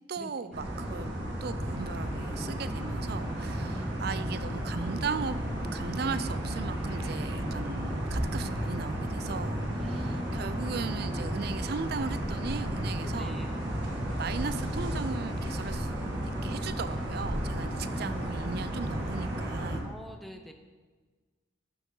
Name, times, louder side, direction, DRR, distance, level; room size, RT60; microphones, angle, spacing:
voice 1, 0.1-1.1 1.4-5.4 5.7-13.5 14.2-16.1 16.4-20.0, right 5 dB, 55° right, 13 dB, 0.4 m, -37 dB
sound 1, 0.5-19.8, equal, 80° right, 1.8 m, -33 dB
sound 2, 1.6-19.8, equal, 25° right, 2.2 m, -41 dB
voice 2, 3.7-4.3 9.8-10.7 13.0-13.5 17.9-18.6 19.8-20.5, equal, ahead, 4 dB, 0.6 m, -44 dB
12.5 x 6.1 x 3.9 m, 1.4 s
head